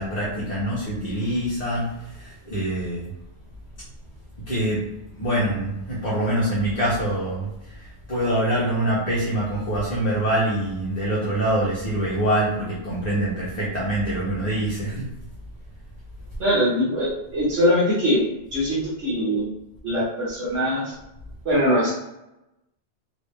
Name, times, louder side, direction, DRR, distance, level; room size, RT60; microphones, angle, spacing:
voice 1, 0.0-3.1 4.4-4.9 5.1-15.1, right 1 dB, 40° left, -6 dB, 0.9 m, -25 dB
voice 2, 16.4-18.2 18.5-19.4 19.8-20.9 21.4-21.9, equal, 70° right, -8 dB, 1.3 m, -22 dB
3.3 x 2.7 x 3.2 m, 0.91 s
omnidirectional pair, 1.2 m